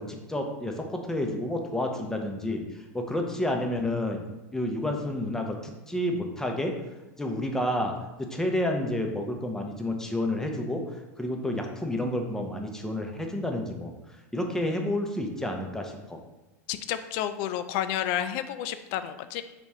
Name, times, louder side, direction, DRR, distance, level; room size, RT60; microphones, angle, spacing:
voice 1, 0.0-2.6 2.9-4.2 4.5-6.8 7.2-7.9 8.2-10.8 11.2-13.9 14.3-16.2, left 1 dB, 5° left, 3 dB, 0.6 m, -30 dB
voice 2, 16.7-19.4, left 11 dB, 55° left, 11 dB, 0.3 m, -30 dB
4.2 x 3.0 x 3.5 m, 1.1 s
hypercardioid pair, 105°, 9 cm